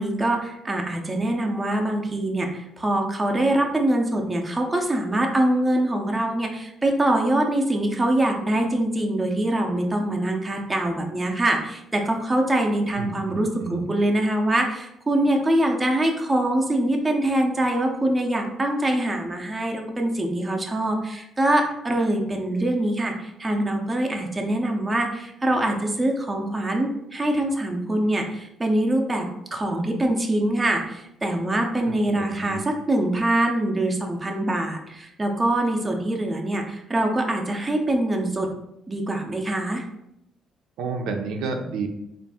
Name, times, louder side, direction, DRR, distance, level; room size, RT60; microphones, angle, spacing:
voice 1, 0.0-38.5 38.9-39.8, right 1 dB, 15° right, 2 dB, 0.5 m, -24 dB
voice 2, 13.0-13.8 32.1-32.6 40.8-41.9, right 4 dB, 90° right, 4 dB, 0.5 m, -30 dB
4.1 x 2.5 x 3.5 m, 0.83 s
cardioid pair, 155°, 0 cm